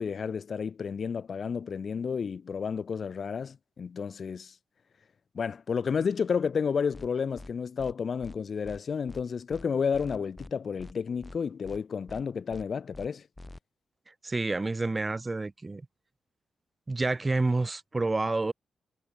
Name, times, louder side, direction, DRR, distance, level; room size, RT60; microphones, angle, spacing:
voice 1, 0.0-4.5 5.3-13.3, left 6 dB, 40° left, 0.9 m, -31 dB
sound 1, 6.9-7.1 7.4-7.5 7.8-7.9 8.2-8.4 8.6-8.8 9.1-9.2 9.5-9.6 9.9-10.5 10.8-10.9 11.2-11.4 11.6-11.8 12.1-12.2 12.5-12.6 12.9-13.1 13.4-13.6, left 2 dB, 10° left, 2.7 m, -45 dB
voice 2, 14.2-15.8 16.9-18.5, right 3 dB, 15° right, 3.2 m, -28 dB
wide cardioid pair, 160°, 0 cm